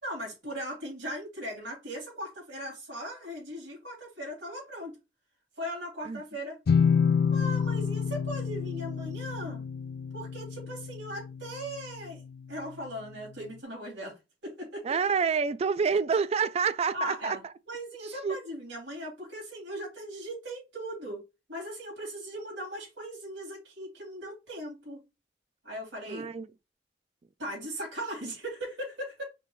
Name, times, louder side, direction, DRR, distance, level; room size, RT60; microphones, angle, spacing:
voice 1, 0.0-5.0 5.6-6.6 7.3-9.6 10.1-12.2 12.5-14.2 14.4-14.9 16.9-17.4 17.7-21.2 21.5-25.0 25.6-26.3 27.4-29.2, equal, 90° right, 2.6 m, -38 dB
sound 1, 6.7-12.3, left 6 dB, 60° left, 0.4 m, -28 dB
voice 2, 14.8-17.4 18.2-18.4 26.1-26.5, right 5 dB, 35° right, 0.3 m, -27 dB
5.1 x 2.6 x 3.1 m
head